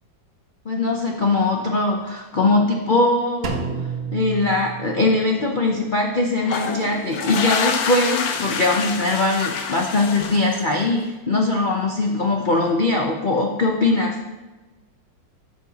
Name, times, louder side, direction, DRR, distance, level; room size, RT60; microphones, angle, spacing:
voice 1, 0.6-3.6 4.1-14.1, left 2 dB, 80° left, 0 dB, 0.4 m, -21 dB
Drum, 3.4-5.4, right 5 dB, 80° right, 1.6 m, -30 dB
sound 1, 6.4-11.0, left 6 dB, 60° left, 1.1 m, -27 dB
13.0 x 5.6 x 2.9 m, 1.2 s
omnidirectional pair, 2.1 m